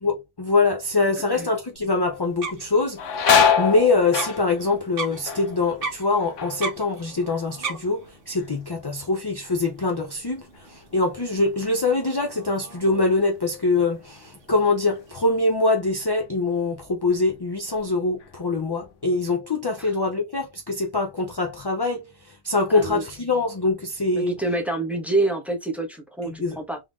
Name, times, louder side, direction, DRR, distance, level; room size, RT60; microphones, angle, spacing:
voice 1, 0.0-24.4 26.3-26.6, left 3 dB, 30° left, 0.4 m, -24 dB
sound 1, 1.8-2.1 2.5-8.1 8.4-9.0 9.5-12.4 12.7-12.8 13.8-14.0 14.4-15.6 16.0-16.2 16.8-17.4 17.7-18.9, left 7 dB, 85° left, 1.1 m, -27 dB
sound 2, 2.1-15.3, right 4 dB, 55° right, 1.1 m, -39 dB
voice 2, 22.7-23.0 24.2-26.8, right 2 dB, ahead, 1.0 m, -27 dB
3.6 x 3.4 x 2.5 m
omnidirectional pair, 1.2 m